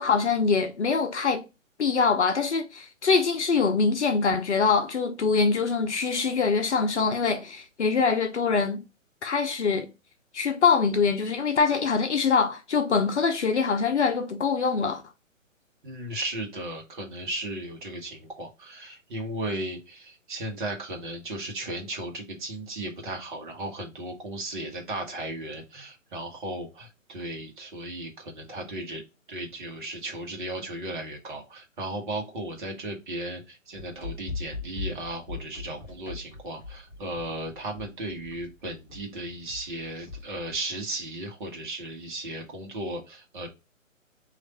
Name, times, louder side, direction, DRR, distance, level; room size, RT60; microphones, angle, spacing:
voice 1, 0.0-1.4 1.8-8.8 9.2-9.9 10.3-15.0, left 5 dB, 60° left, 0.6 m, -24 dB
voice 2, 15.8-29.0 29.3-43.5, right 1 dB, 40° right, 1.1 m, -35 dB
sound 1, 33.8-40.6, left 4 dB, 10° left, 0.5 m, -39 dB
3.2 x 2.5 x 4.0 m
figure-of-eight pair, 135°, 39 cm